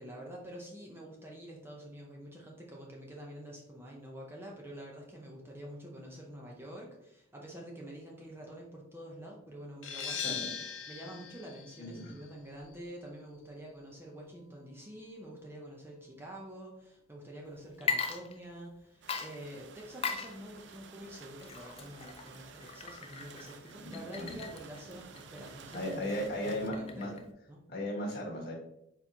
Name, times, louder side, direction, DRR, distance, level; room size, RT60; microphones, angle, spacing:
voice 1, 0.0-10.4 10.9-27.2 27.5-27.6, equal, 10° right, -2 dB, 0.6 m, -47 dB
sound 1, 9.8-15.2, left 7 dB, 90° left, 0.6 m, -42 dB
voice 2, 11.8-12.2 23.8-24.3 25.7-27.1 27.7-28.5, left 1 dB, 55° left, -3 dB, 1.6 m, -36 dB
Water / Liquid, 17.7-18.8 19.1-27.3, left 5 dB, 30° left, 0.4 m, -39 dB
sound 2, 19.0-26.7, right 5 dB, 65° right, 0.4 m, -52 dB
4.6 x 4.0 x 2.8 m, 0.80 s
head